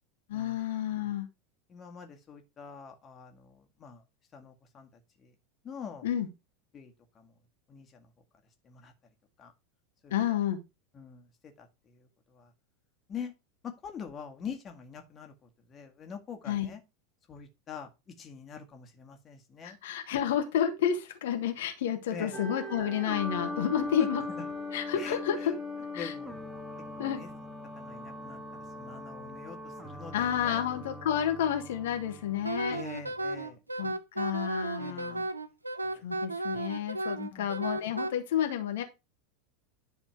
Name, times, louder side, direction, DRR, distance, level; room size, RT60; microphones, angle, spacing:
voice 1, 0.3-1.3 6.0-6.3 10.1-10.6 16.5-16.7 19.6-24.2 24.7-25.5 25.9-26.1 27.0-27.2 30.1-32.8 33.8-35.2 36.0-38.8, left 9 dB, 60° left, 1.4 m, -30 dB
voice 2, 1.7-4.0 4.3-4.9 5.2-5.3 5.6-6.1 6.7-7.3 7.7-8.1 8.7-8.9 9.4-9.5 10.0-10.1 10.9-11.2 11.6-11.7 12.0-12.1 12.3-12.5 13.1-13.3 13.6-15.3 15.7-16.8 17.3-17.9 18.2-19.8 22.1-22.4 24.0-24.1 25.0-25.2 25.4-25.5 26.0-26.4 27.0-27.3 27.8-28.4 28.8-30.6 32.7-33.6 34.8-35.2 37.2-37.6, left 7 dB, 30° left, 1.8 m, -44 dB
sound 1, 22.3-33.3, left 2 dB, 10° right, 1.6 m, -40 dB
Wind instrument woodwind instrument, 32.4-38.1, right 2 dB, 85° right, 0.7 m, -34 dB
10.5 x 4.3 x 4.5 m
figure-of-eight pair, 85°, 0 cm